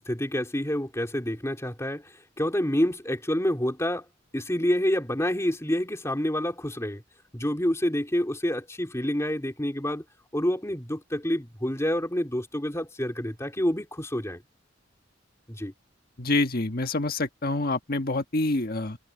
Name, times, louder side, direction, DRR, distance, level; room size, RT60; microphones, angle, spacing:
voice 1, 0.0-4.0 4.3-7.0 7.3-10.0 10.3-14.4 15.5-15.7, equal, 15° left, 3.4 m, -28 dB
voice 2, 16.2-19.0, left 2 dB, 50° left, 1.4 m, -27 dB
head